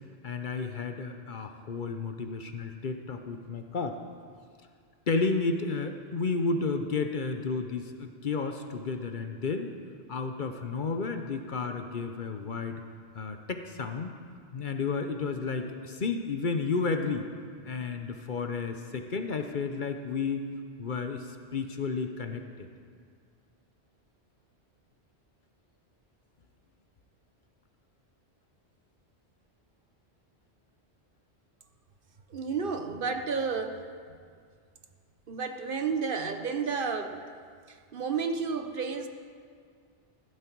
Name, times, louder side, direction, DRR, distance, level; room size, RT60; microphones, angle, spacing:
voice 1, 0.2-4.0 5.1-9.7 10.1-12.8 13.1-14.2 14.5-17.3 17.6-20.4 20.8-22.7, left 4 dB, 50° left, 6 dB, 0.8 m, -32 dB
voice 2, 32.3-33.9 35.3-37.3 37.7-39.1, right 5 dB, 55° right, 6 dB, 0.9 m, -31 dB
15.0 x 12.0 x 4.6 m, 2.1 s
omnidirectional pair, 1.2 m